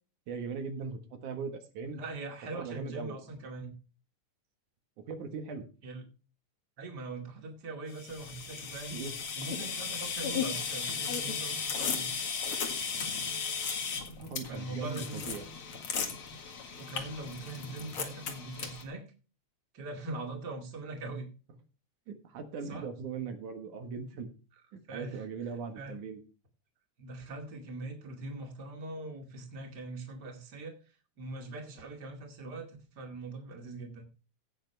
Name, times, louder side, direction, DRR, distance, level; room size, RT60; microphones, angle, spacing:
voice 1, 0.3-2.0 2.5-3.2 5.1-5.6 8.9-9.2 14.2-15.5 22.1-24.3 24.9-26.2, right 5 dB, 80° right, 6 dB, 3.1 m, -39 dB
voice 2, 1.9-3.7 5.8-6.0 6.8-9.0 9.4-12.1 14.5-15.2 16.8-19.1 19.7-21.3 22.6-22.9 24.9-25.3 25.8-26.0 27.0-30.7 31.2-34.1, right 2 dB, 35° right, 2 dB, 2.7 m, -42 dB
sound 1, 8.0-18.8, left 6 dB, 50° left, 2.4 m, -36 dB
17.0 x 6.7 x 3.4 m, 0.34 s
omnidirectional pair, 3.4 m